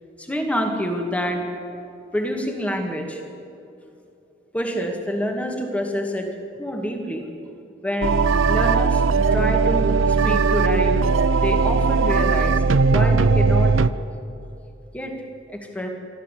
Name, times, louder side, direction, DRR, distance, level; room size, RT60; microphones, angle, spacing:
voice 1, 0.2-1.4 2.1-3.2 4.5-6.3 6.6-7.3 7.8-8.2 8.5-9.0 9.3-12.6 12.9-13.8 14.9-15.2 15.5-15.9, equal, 5° left, 3 dB, 2.1 m, -27 dB
sound 1, 8.0-13.9, right 4 dB, 80° right, 0.6 m, -18 dB
24.5 x 14.0 x 8.3 m, 2.7 s
head